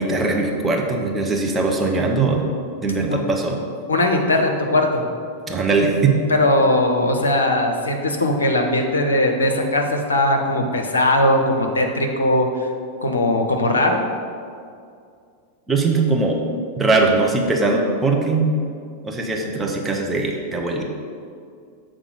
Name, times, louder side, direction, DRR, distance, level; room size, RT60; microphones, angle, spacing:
voice 1, 0.0-2.4 2.8-3.6 5.5-6.2 15.7-16.4 16.8-18.5 19.0-20.8, right 3 dB, 15° right, 0 dB, 0.8 m, -20 dB
voice 2, 3.9-5.0 6.4-12.7 13.0-14.0, left 1 dB, 70° left, 3 dB, 0.7 m, -19 dB
6.7 x 3.7 x 5.1 m, 2.3 s
figure-of-eight pair, 90°, 0 cm